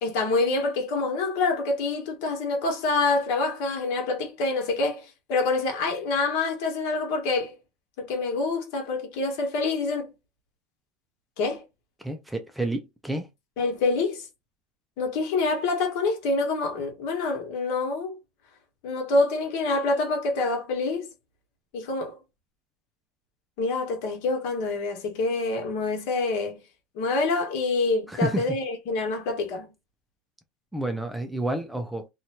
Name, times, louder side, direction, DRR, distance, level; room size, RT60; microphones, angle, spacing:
voice 1, 0.0-7.6 8.0-10.1 11.4-11.6 13.6-14.3 15.0-18.2 18.8-21.1 21.7-22.2 23.6-26.6 26.9-29.7, left 3 dB, 65° left, 1.2 m, -26 dB
voice 2, 12.0-13.3 28.1-28.5 30.7-32.1, right 1 dB, 5° right, 0.4 m, -29 dB
2.8 x 2.3 x 2.8 m
cardioid pair, 155°, 0 cm